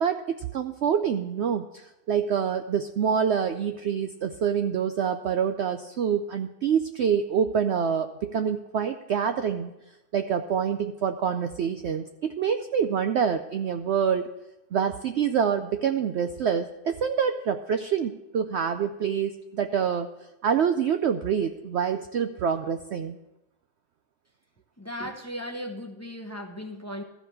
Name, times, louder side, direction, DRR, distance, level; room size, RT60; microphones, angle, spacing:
voice 1, 0.0-9.7 10.1-14.3 14.7-20.1 20.4-23.2, right 7 dB, 90° right, 8 dB, 0.6 m, -26 dB
voice 2, 24.8-27.0, equal, 15° left, 4 dB, 0.6 m, -36 dB
14.0 x 5.1 x 7.7 m, 0.94 s
omnidirectional pair, 1.7 m